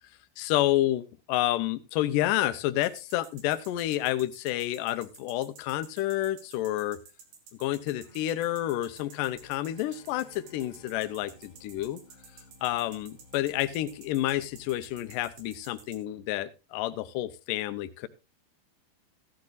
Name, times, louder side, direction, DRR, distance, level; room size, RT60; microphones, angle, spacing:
voice 1, 0.4-7.0 7.6-12.0 12.6-18.1, left 14 dB, 85° left, 10 dB, 1.9 m, -29 dB
sound 1, 2.8-16.0, right 6 dB, 80° right, 4.6 m, -52 dB
Bowed string instrument, 8.0-12.8, left 6 dB, 45° left, 4.3 m, -60 dB
sound 2, 9.4-15.9, left 2 dB, 25° left, 6.6 m, -57 dB
15.5 x 13.0 x 2.5 m, 0.28 s
omnidirectional pair, 4.7 m